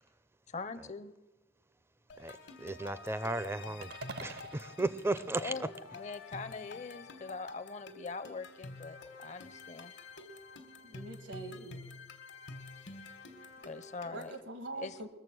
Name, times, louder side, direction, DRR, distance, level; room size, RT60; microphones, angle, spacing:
voice 1, 0.5-1.1 5.4-9.9 13.6-14.3 14.8-15.1, left 4 dB, 40° left, 0.6 m, -42 dB
sound 1, 2.1-14.4, left 3 dB, 70° left, 1.4 m, -49 dB
voice 2, 2.2-3.9 4.2-5.5, right 2 dB, 15° right, 0.5 m, -35 dB
sound 2, 3.8-6.1, right 3 dB, 60° right, 0.7 m, -48 dB
voice 3, 10.8-11.8 14.1-15.1, right 2 dB, 80° right, 1.5 m, -43 dB
21.0 x 7.2 x 6.1 m
head